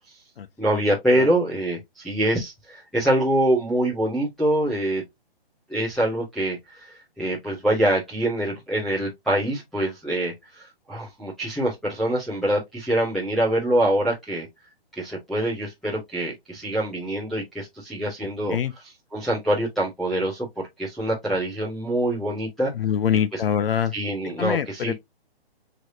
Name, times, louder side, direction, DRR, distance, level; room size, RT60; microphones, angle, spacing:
voice 1, 0.6-5.0 5.7-14.5 14.9-18.6 18.8-20.5 20.8-22.7 23.3-23.4 23.9-24.9, right 1 dB, ahead, 0.4 m, -25 dB
voice 2, 22.7-23.9 24.4-24.9, left 8 dB, 65° left, 0.7 m, -24 dB
4.6 x 3.2 x 2.6 m
hypercardioid pair, 155°, 31 cm